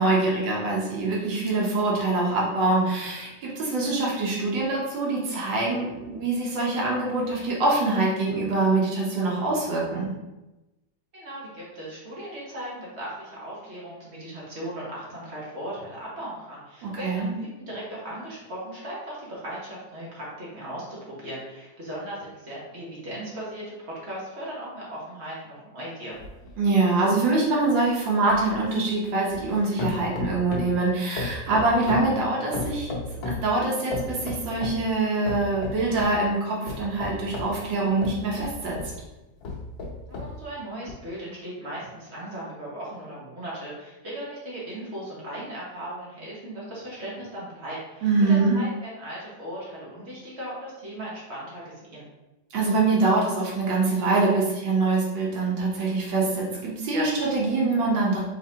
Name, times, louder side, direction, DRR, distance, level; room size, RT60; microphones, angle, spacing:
voice 1, 0.0-10.1 16.8-17.3 26.6-32.9 33.3-38.8 48.0-48.6 52.5-58.2, right 3 dB, 80° right, -4 dB, 1.7 m, -24 dB
voice 2, 11.1-26.2 40.1-52.0, right 1 dB, 40° right, -6 dB, 1.2 m, -37 dB
sound 1, 26.2-29.5 29.8-30.8 31.2-33.5 33.9-34.8 35.3-36.2 36.7-39.0 39.4-40.4 40.9-41.0, left 3 dB, 85° left, 1.6 m, -34 dB
4.2 x 3.7 x 2.8 m, 1.0 s
omnidirectional pair, 2.0 m